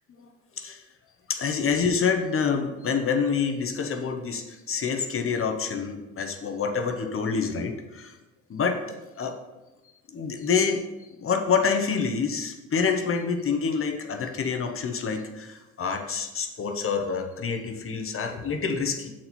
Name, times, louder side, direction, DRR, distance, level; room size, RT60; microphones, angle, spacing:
voice 1, 1.3-8.2 8.5-9.4 10.1-10.8 11.2-19.1, left 5 dB, 45° left, 4 dB, 0.9 m, -27 dB
7.5 x 4.3 x 4.3 m, 1.1 s
cardioid pair, 90°, 30 cm